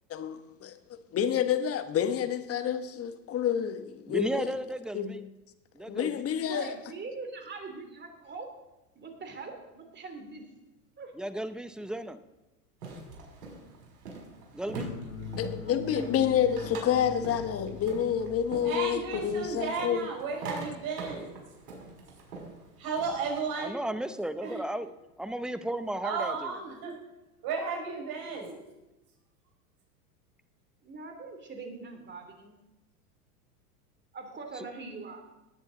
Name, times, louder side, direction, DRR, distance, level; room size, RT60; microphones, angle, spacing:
voice 1, 0.1-4.5 4.9-5.2 5.9-6.7 15.4-20.1, left 9 dB, 30° left, 1.3 m, -29 dB
voice 2, 4.1-5.2 5.7-6.3 11.2-12.2 14.5-14.9 23.6-26.5 28.4-28.6 34.5-34.7, right 1 dB, ahead, 0.6 m, -35 dB
voice 3, 6.4-8.5 8.9-10.4 11.0-11.1 15.6-16.1 30.8-32.6 34.1-35.2, right 4 dB, 20° right, 3.0 m, -42 dB
sound 1, 12.8-23.4, right 3 dB, 80° right, 5.5 m, -43 dB
sound 2, 14.7-19.8, left 5 dB, 50° left, 5.6 m, -43 dB
voice 4, 18.6-21.3 22.8-23.8 24.4-24.6 26.0-27.0 27.4-28.5, right 5 dB, 50° right, 5.4 m, -34 dB
18.5 x 9.6 x 3.8 m
hypercardioid pair, 100°, 47 cm